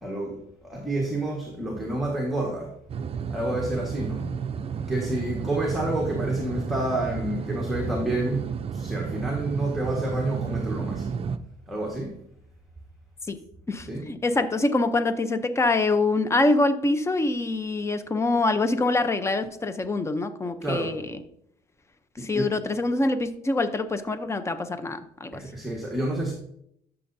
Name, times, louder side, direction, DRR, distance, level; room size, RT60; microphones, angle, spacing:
voice 1, 0.0-2.8 3.3-4.3 4.9-11.1 11.7-12.1 13.9-14.0 20.6-21.0 22.2-22.5 25.3-26.3, right 1 dB, ahead, -3 dB, 1.6 m, -29 dB
sound 1, 2.9-11.4, right 6 dB, 35° right, 0.5 m, -31 dB
voice 2, 13.7-21.0 22.2-25.4, left 2 dB, 15° left, 10 dB, 0.7 m, -25 dB
12.0 x 6.9 x 2.7 m, 0.73 s
cardioid pair, 110°, 17 cm